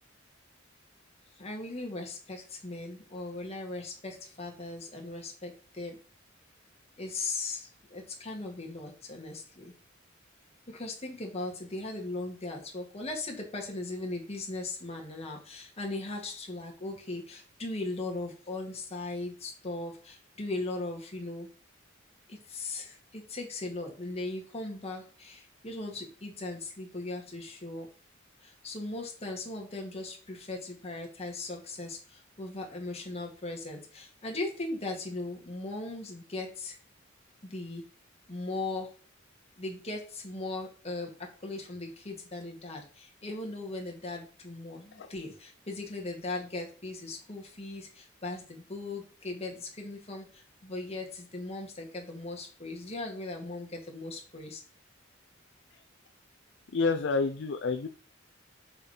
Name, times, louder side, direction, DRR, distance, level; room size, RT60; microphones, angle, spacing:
voice 1, 1.4-6.0 7.0-9.7 10.7-21.5 22.3-27.9 28.4-36.8 37.4-37.8 38.3-38.9 39.6-54.6, left 2 dB, 30° left, 1 dB, 1.8 m, -38 dB
voice 2, 56.7-57.9, left 4 dB, 60° left, 7 dB, 0.5 m, -28 dB
6.5 x 4.9 x 4.4 m, 0.39 s
head